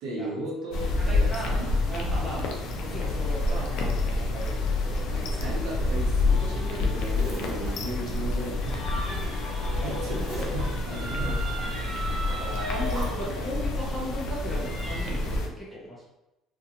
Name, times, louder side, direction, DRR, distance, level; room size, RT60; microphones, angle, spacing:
voice 1, 0.0-1.7 2.0-2.3 5.1-8.8 9.8-12.0, right 1 dB, 65° right, -3 dB, 0.7 m, -36 dB
sound 1, 0.7-15.5, left 2 dB, 60° left, 0.4 m, -28 dB
voice 2, 1.0-2.6 2.8-5.4 9.7-10.2 11.2-11.4 12.3-16.0, equal, ahead, -6 dB, 0.4 m, -37 dB
Zipper (clothing), 5.2-6.2 6.6-7.7 9.0-9.4 10.0-10.7 12.0-12.3 12.7-13.1, right 1 dB, 45° right, 1.0 m, -41 dB
sound 2, 6.3-15.2, right 1 dB, 20° right, 1.2 m, -38 dB
2.4 x 2.2 x 2.8 m, 0.94 s
cardioid pair, 175°, 0 cm